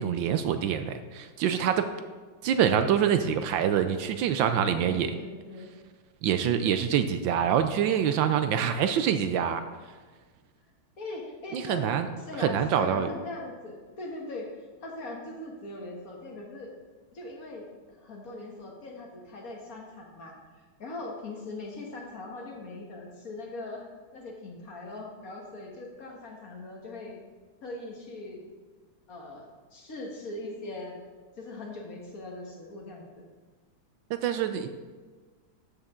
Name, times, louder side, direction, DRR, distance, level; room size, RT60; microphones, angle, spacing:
voice 1, 0.0-1.9 2.4-5.1 6.2-9.6 11.5-12.1 12.4-13.1 34.1-34.7, right 8 dB, 75° right, 9 dB, 1.2 m, -25 dB
voice 2, 4.7-5.7 11.0-11.8 12.2-14.5 14.8-16.7 17.1-17.7 18.0-20.3 20.8-27.2 27.6-28.4 29.1-31.0 31.4-33.0, left 2 dB, 50° left, -1 dB, 1.7 m, -40 dB
13.0 x 6.6 x 3.7 m, 1.4 s
omnidirectional pair, 2.2 m